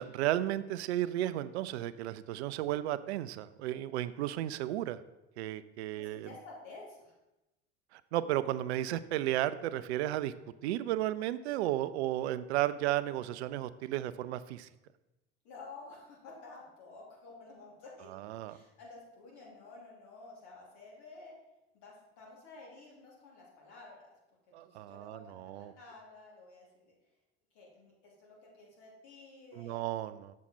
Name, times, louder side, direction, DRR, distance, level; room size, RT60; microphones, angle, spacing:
voice 1, 0.0-5.0 5.4-6.3 7.9-10.3 10.6-14.7 18.1-18.6 24.5-25.7 29.5-30.3, right 13 dB, 80° right, 15 dB, 0.5 m, -34 dB
voice 2, 6.0-7.1 15.4-18.1 18.5-21.3 21.7-24.1 24.5-26.9 27.5-29.8, left 3 dB, 70° left, -3 dB, 3.1 m, -52 dB
7.3 x 6.3 x 4.2 m, 0.97 s
hypercardioid pair, 70°, 32 cm